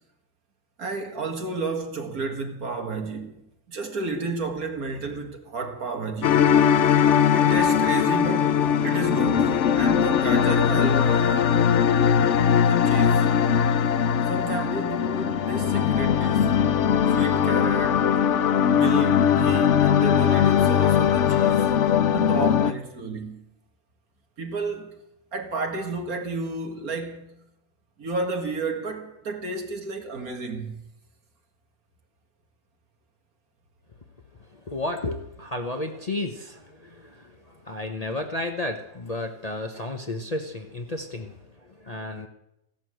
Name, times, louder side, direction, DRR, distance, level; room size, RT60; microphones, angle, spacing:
voice 1, 0.8-6.4 6.8-7.0 7.3-11.6 12.6-13.3 14.3-16.6 17.1-18.1 18.7-21.7 22.1-23.4 24.4-24.9 25.3-27.4 28.0-30.8, right 3 dB, 90° right, 2.4 m, -32 dB
sound 1, 6.2-22.7, left 8 dB, 60° left, 1.0 m, -20 dB
voice 2, 34.5-42.3, left 2 dB, 30° left, 1.0 m, -33 dB
15.5 x 12.0 x 7.8 m
omnidirectional pair, 1.5 m